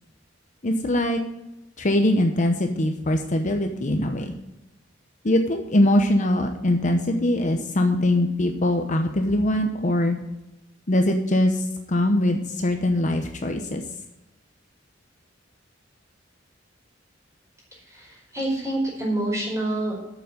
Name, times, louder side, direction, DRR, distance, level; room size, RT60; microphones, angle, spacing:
voice 1, 0.6-1.2 1.8-4.3 5.2-10.2 10.9-13.8, left 1 dB, 40° left, 5 dB, 0.9 m, -22 dB
voice 2, 17.7-20.1, right 1 dB, 15° right, -3 dB, 5.0 m, -27 dB
8.8 x 7.2 x 7.7 m, 0.97 s
head